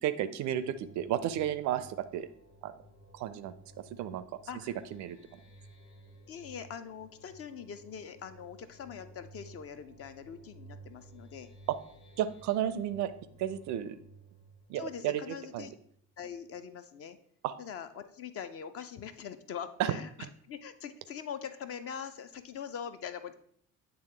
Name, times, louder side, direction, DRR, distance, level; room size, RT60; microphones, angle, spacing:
voice 1, 0.0-2.3 2.6-2.7 3.1-3.5 3.9-4.2 4.9-5.2 12.2-13.1 13.4-14.0 14.7-15.7 17.4-17.6 19.8-20.0, right 11 dB, 45° right, 13 dB, 0.4 m, -32 dB
sound 1, 0.5-16.0, right 2 dB, 65° left, 1.0 m, -55 dB
voice 2, 4.5-4.8 6.3-11.5 14.7-15.7 16.2-17.2 17.6-20.1 20.4-23.3, left 7 dB, 35° left, 10 dB, 0.4 m, -43 dB
8.9 x 3.4 x 3.2 m, 0.66 s
figure-of-eight pair, 50°, 43 cm